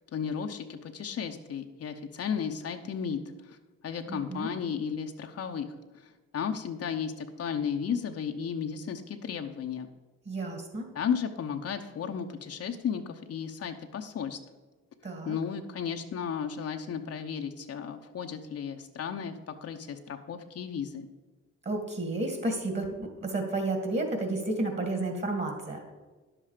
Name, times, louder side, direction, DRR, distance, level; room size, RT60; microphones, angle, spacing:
voice 1, 0.0-3.6 3.8-9.9 10.9-14.4 15.2-21.1, left 7 dB, 55° left, 5 dB, 0.8 m, -34 dB
voice 2, 4.1-4.5 10.3-10.9 15.0-15.4 21.7-25.9, right 2 dB, 35° right, 4 dB, 2.2 m, -31 dB
10.5 x 7.4 x 5.0 m, 1.3 s
cardioid pair, 90°, 30 cm